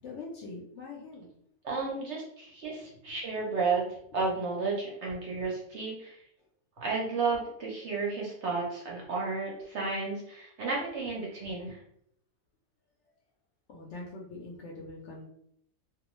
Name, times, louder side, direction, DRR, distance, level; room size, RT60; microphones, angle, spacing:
voice 1, 0.0-1.3 2.8-2.9 13.7-15.3, left 3 dB, 65° left, -1 dB, 0.7 m, -43 dB
voice 2, 1.6-3.9 4.1-6.2 6.8-11.8, right 4 dB, 60° right, -3 dB, 0.8 m, -32 dB
2.3 x 2.3 x 3.0 m, 0.71 s
omnidirectional pair, 1.5 m